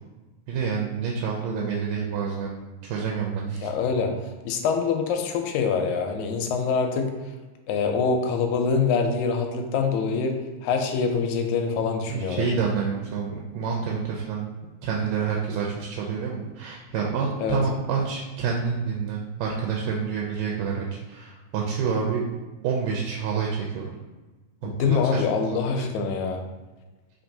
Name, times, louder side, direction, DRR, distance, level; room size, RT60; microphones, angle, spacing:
voice 1, 0.5-3.7 12.1-14.4 14.8-22.2 22.6-23.9 24.6-24.7 25.1-25.6 25.9-26.1, right 6 dB, 80° right, -2 dB, 1.7 m, -28 dB
voice 2, 3.6-4.1 4.4-7.1 7.7-10.3 10.6-12.5 17.4-17.6 24.6-26.4, left 5 dB, 80° left, 4 dB, 1.9 m, -25 dB
4.5 x 2.9 x 2.6 m, 1.2 s
omnidirectional pair, 3.4 m